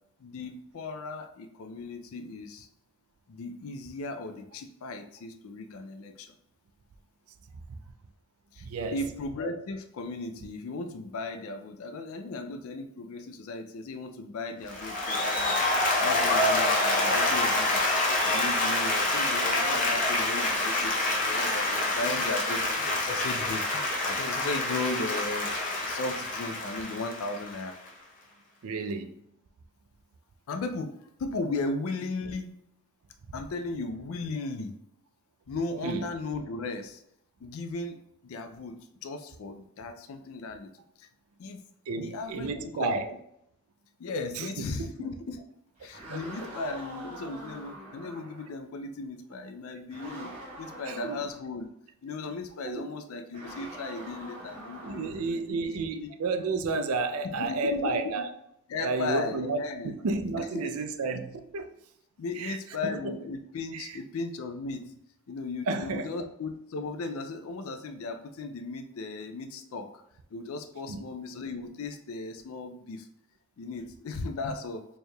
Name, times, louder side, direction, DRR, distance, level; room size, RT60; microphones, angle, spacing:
voice 1, 0.2-2.7 3.3-6.3 8.5-8.7 8.9-15.6 16.0-17.8 18.2-23.6 24.0-25.5 25.8-27.7 30.5-32.5 33.3-34.8 35.5-37.0 37.4-38.0 38.2-40.7 41.0-41.1 41.4-41.6 42.0-43.2 44.0-45.4 45.8-51.7 52.0-56.1 57.2-58.0 58.7-59.9 60.5-60.7 62.2-64.9 65.3-70.0 70.3-73.1 73.6-74.8, left 3 dB, 75° left, 0.4 m, -36 dB
voice 2, 8.6-9.0 28.6-29.2 35.8-36.1 41.9-43.2 44.3-45.1 46.1-46.2 50.8-51.2 52.6-52.8 54.8-58.3 58.8-61.7 62.3-63.3 63.7-64.0 65.7-66.3 70.9-71.0, right 3 dB, 80° right, 0.4 m, -32 dB
Applause, 14.7-27.9, left 2 dB, 35° left, 0.7 m, -27 dB
sound 1, 45.7-48.5 49.9-51.4 53.3-55.3, right 1 dB, 30° right, 1.2 m, -44 dB
4.4 x 3.3 x 2.2 m
head